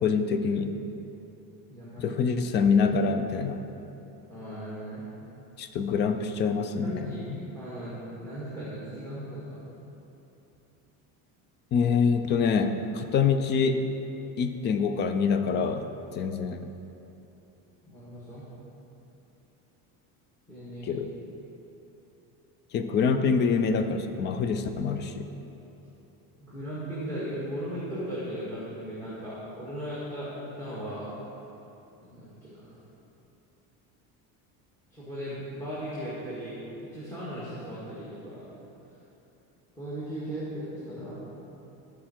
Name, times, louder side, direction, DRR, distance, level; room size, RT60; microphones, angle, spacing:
voice 1, 0.0-0.8 2.0-3.6 5.6-6.9 11.7-13.8 14.4-15.9 16.1-16.7 20.9-21.1 22.7-25.3, left 5 dB, 30° left, 7 dB, 0.4 m, -25 dB
voice 2, 1.7-2.1 4.3-5.1 6.8-7.3 7.5-9.6 17.8-18.5 20.5-21.0 26.4-30.3 30.6-31.1 32.0-32.8 34.9-38.5 39.8-41.2, equal, 5° left, -9 dB, 1.7 m, -37 dB
13.5 x 4.7 x 4.4 m, 3.0 s
cardioid pair, 150°, 41 cm